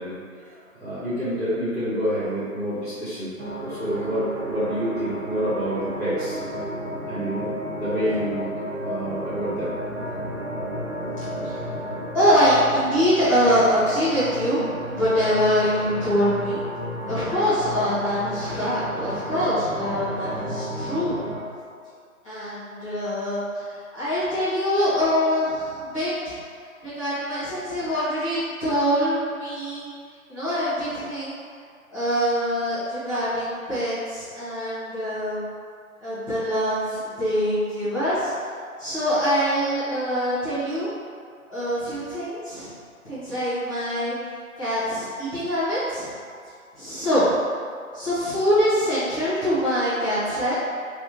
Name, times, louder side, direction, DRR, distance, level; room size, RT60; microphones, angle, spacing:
voice 1, 0.0-3.3 3.6-6.5 7.1-8.5 8.8-10.2, equal, ahead, -24 dB, 1.3 m, -28 dB
sound 1, 3.4-21.4, equal, 55° right, 1.3 m, -32 dB
voice 2, 12.1-14.6 14.9-16.6 17.1-21.2 22.2-26.3 26.8-29.8 30.3-31.4 31.9-35.4 36.0-38.3 38.8-40.9 41.5-42.7 43.0-44.2 44.6-46.1 46.7-47.2 47.9-50.5, equal, 25° left, -16 dB, 1.3 m, -24 dB
3.5 x 3.4 x 2.9 m, 2.2 s
figure-of-eight pair, 140°, 42 cm